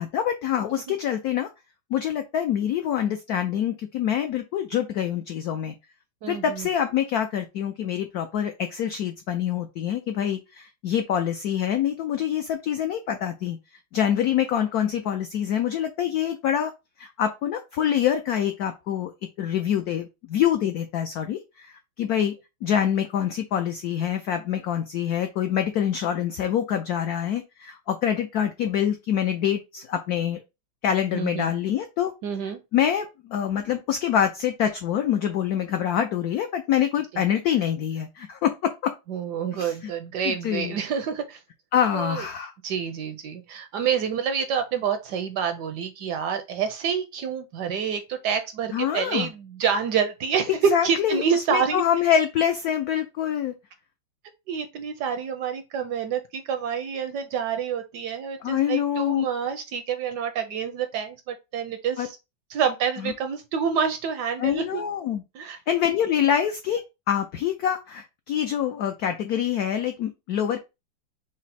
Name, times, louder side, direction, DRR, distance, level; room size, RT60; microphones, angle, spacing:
voice 1, 0.0-1.5 1.9-5.7 6.3-13.6 13.9-16.7 17.0-19.1 19.4-22.3 22.6-30.4 30.8-32.1 32.7-38.9 39.5-39.9 40.2-40.8 41.7-42.5 48.7-49.3 50.7-53.5 58.4-59.3 62.0-62.1 63.0-63.1 64.4-65.2 65.7-70.6, left 9 dB, 85° left, 0.8 m, -25 dB
voice 2, 6.2-6.7 31.1-31.5 32.2-32.6 39.1-41.4 41.9-42.2 42.6-51.8 54.5-62.2 62.5-64.8 65.3-65.6, right 7 dB, 75° right, 1.0 m, -27 dB
5.1 x 2.0 x 4.1 m
omnidirectional pair, 2.1 m